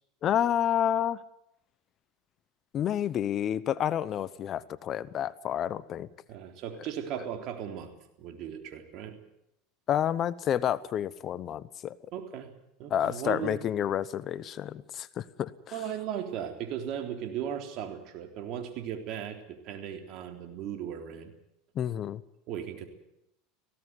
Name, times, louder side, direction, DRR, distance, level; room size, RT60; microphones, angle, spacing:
voice 1, 0.2-1.2 2.7-6.1 9.9-11.9 12.9-15.5 21.8-22.2, left 10 dB, 40° left, 17 dB, 0.9 m, -29 dB
voice 2, 6.3-7.9 8.2-9.2 12.1-12.5 12.8-13.6 15.7-21.3 22.5-22.9, right 9 dB, 55° right, 5 dB, 3.5 m, -37 dB
18.5 x 16.5 x 9.5 m, 0.81 s
supercardioid pair, 115°, 0 cm